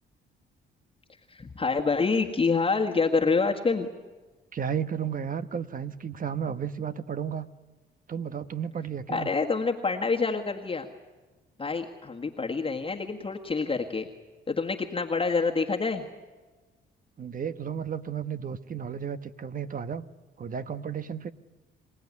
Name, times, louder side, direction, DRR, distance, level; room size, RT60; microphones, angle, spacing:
voice 1, 1.3-3.9 9.1-10.9 11.6-14.1 14.5-16.1, left 4 dB, 25° left, 2 dB, 1.7 m, -27 dB
voice 2, 4.5-7.5 8.1-9.3 17.2-20.0 20.4-21.3, right 7 dB, 45° right, 12 dB, 1.1 m, -33 dB
26.0 x 17.0 x 9.6 m, 1.3 s
cardioid pair, 90°, 20 cm